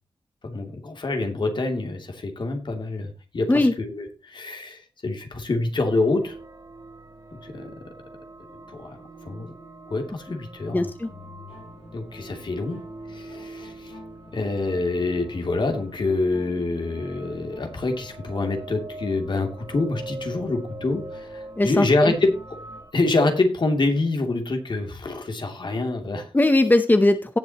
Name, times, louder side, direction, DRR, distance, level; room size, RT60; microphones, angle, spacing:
voice 1, 0.4-6.4 7.4-7.7 8.7-9.0 9.2-9.5 9.9-10.9 11.9-12.8 13.1-13.9 14.3-22.3 22.9-26.3, left 2 dB, 60° left, 4 dB, 2.8 m, -26 dB
sound 1, 5.9-22.9, right 2 dB, 45° right, 3.2 m, -43 dB
voice 2, 10.7-11.1 21.6-22.1 26.3-27.4, left 2 dB, 20° left, 10 dB, 0.8 m, -19 dB
sound 2, 11.1-22.8, left 3 dB, 80° left, 7.1 m, -47 dB
17.5 x 7.5 x 2.9 m, 0.32 s
wide cardioid pair, 85°, 9 cm